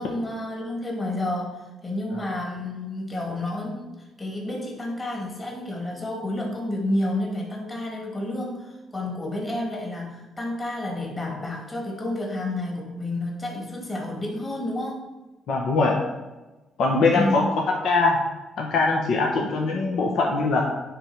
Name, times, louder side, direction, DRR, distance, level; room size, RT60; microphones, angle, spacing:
voice 1, 0.0-15.0 17.1-17.5, left 1 dB, 25° left, -1 dB, 2.2 m, -30 dB
voice 2, 15.5-16.0 16.8-18.2 18.6-20.6, left 3 dB, 70° left, 0 dB, 1.0 m, -22 dB
9.9 x 3.5 x 4.6 m, 1.1 s
cardioid pair, 90°, 0 cm